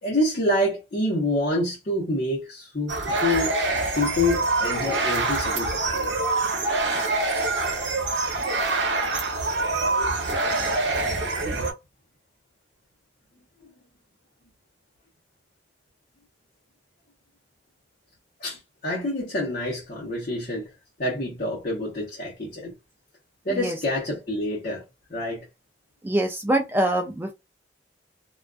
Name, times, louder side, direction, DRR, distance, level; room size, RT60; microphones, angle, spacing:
voice 1, 0.0-3.5 3.9-6.1 18.4-20.7 21.0-22.7 23.4-24.8 25.1-25.5, left 1 dB, 45° left, 0.8 m, -27 dB
sound 1, 2.9-11.7, right 3 dB, 65° right, 0.8 m, -25 dB
voice 2, 26.0-27.3, right 1 dB, 10° right, 0.3 m, -24 dB
2.3 x 2.3 x 2.3 m
head